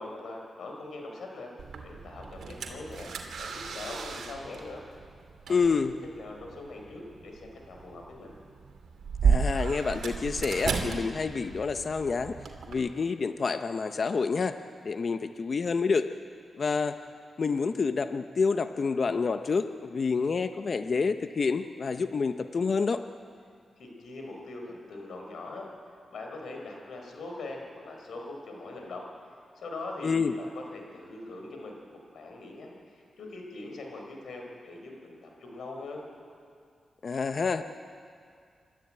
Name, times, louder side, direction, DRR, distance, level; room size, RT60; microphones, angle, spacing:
voice 1, 0.0-1.5 1.8-3.1 3.4-4.8 5.5-8.3 23.8-25.7 26.1-29.1 29.5-36.0, left 2 dB, 80° left, 1 dB, 4.8 m, -42 dB
sound 1, 1.6-12.7, right 5 dB, 80° right, 2.4 m, -34 dB
voice 2, 5.5-5.9 9.2-12.3 12.7-14.6 14.8-16.1 16.6-16.9 17.4-23.0 30.0-30.4 37.0-37.6, left 5 dB, 55° left, 9 dB, 0.8 m, -28 dB
27.0 x 13.0 x 8.9 m, 2.2 s
cardioid pair, 75°, 0 cm